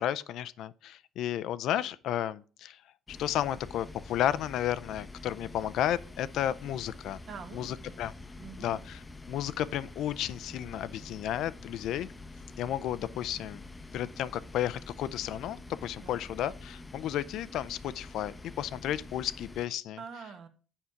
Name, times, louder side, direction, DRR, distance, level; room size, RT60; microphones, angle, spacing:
voice 1, 0.0-2.8 3.1-7.2 7.5-8.1 8.6-9.0 9.3-12.1 12.6-13.6 13.9-20.0, left 11 dB, 65° left, 0.4 m, -33 dB
sound 1, 3.1-19.7, left 2 dB, 20° left, 0.7 m, -47 dB
voice 2, 7.3-8.0 8.4-8.9 16.0-16.2 20.0-20.5, right 6 dB, 55° right, 1.3 m, -45 dB
7.1 x 4.9 x 5.8 m
supercardioid pair, 85°, 0 cm